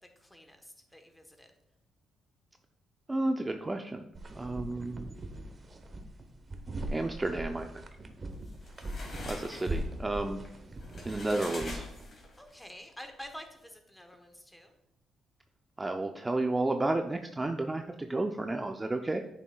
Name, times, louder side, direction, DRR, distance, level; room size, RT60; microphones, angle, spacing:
voice 1, 0.2-1.5 12.4-14.7, equal, 5° left, 5 dB, 1.1 m, -48 dB
voice 2, 3.1-4.0 4.4-5.1 6.9-7.7 9.3-10.4 11.1-11.8 15.8-19.2, right 2 dB, 20° right, 5 dB, 0.4 m, -32 dB
sound 1, 4.1-12.1, right 1 dB, 35° right, 0.8 m, -40 dB
sound 2, 8.3-12.5, left 2 dB, 45° left, 2.4 m, -45 dB
8.7 x 6.2 x 2.3 m, 0.84 s
cardioid pair, 90°, 0 cm